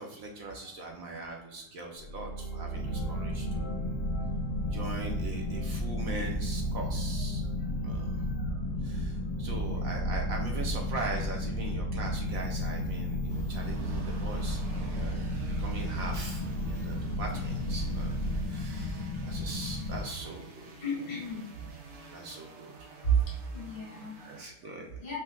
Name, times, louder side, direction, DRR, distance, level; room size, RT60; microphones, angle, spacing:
voice 1, 0.0-3.8 4.7-7.4 7.8-8.3 8.8-15.3 15.6-18.2 18.4-20.7 22.1-22.7 24.2-24.9, right 2 dB, 65° right, 0 dB, 1.0 m, -41 dB
sound 1, 2.0-18.4, right 2 dB, 35° left, 1.0 m, -35 dB
sound 2, 2.7-20.0, left 3 dB, 80° left, 1.2 m, -36 dB
voice 2, 9.4-9.8 20.8-21.5 23.0-23.2 23.5-24.1 24.6-24.7 25.0-25.2, right 4 dB, 60° left, -2 dB, 1.8 m, -31 dB
sound 3, 13.3-24.4, right 3 dB, 85° right, 1.4 m, -50 dB
5.4 x 2.2 x 3.6 m, 0.89 s
omnidirectional pair, 1.8 m